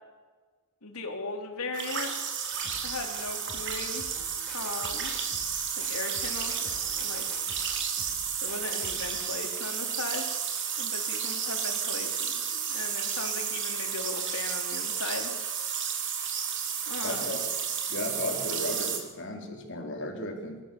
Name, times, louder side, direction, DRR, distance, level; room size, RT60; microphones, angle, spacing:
voice 1, 0.8-2.1 2.8-4.0 4.5-5.1 5.8-7.2 8.4-10.2 10.8-15.3 16.9-17.4, left 3 dB, 85° left, 3 dB, 3.8 m, -38 dB
sound 1, 1.7-19.0, right 7 dB, 60° right, 3.3 m, -32 dB
sound 2, 2.5-9.1, equal, 5° left, 5.0 m, -49 dB
voice 2, 17.0-17.4 17.9-20.6, left 1 dB, 60° left, 2 dB, 4.2 m, -35 dB
25.5 x 14.0 x 7.2 m, 1.4 s
head